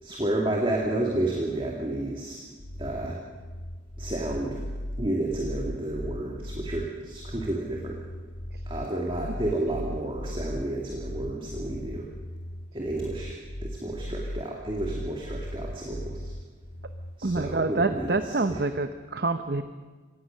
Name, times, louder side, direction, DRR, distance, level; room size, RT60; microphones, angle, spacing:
voice 1, 0.0-2.5 2.8-3.2 4.0-4.6 5.0-8.0 8.7-12.1 12.7-16.3 17.2-18.6, right 1 dB, 25° right, -1 dB, 2.5 m, -31 dB
sound 1, 2.6-17.6, left 1 dB, 85° left, 2.2 m, -37 dB
voice 2, 17.2-19.7, right 3 dB, 55° right, 9 dB, 0.8 m, -27 dB
25.5 x 18.0 x 6.6 m, 1.4 s
head